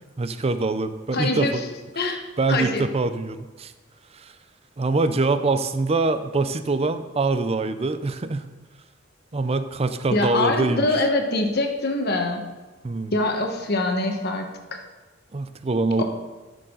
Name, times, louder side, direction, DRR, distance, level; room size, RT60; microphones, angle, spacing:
voice 1, 0.2-1.6 2.4-3.7 4.1-4.3 4.8-8.5 9.3-10.9 12.8-13.1 15.3-16.0, right 3 dB, 30° right, 10 dB, 0.5 m, -24 dB
voice 2, 1.1-1.5 1.9-2.2 2.5-2.8 10.1-12.4 13.1-14.8 16.0-16.1, left 2 dB, 50° left, 3 dB, 1.3 m, -24 dB
13.5 x 6.7 x 3.9 m, 1.2 s
head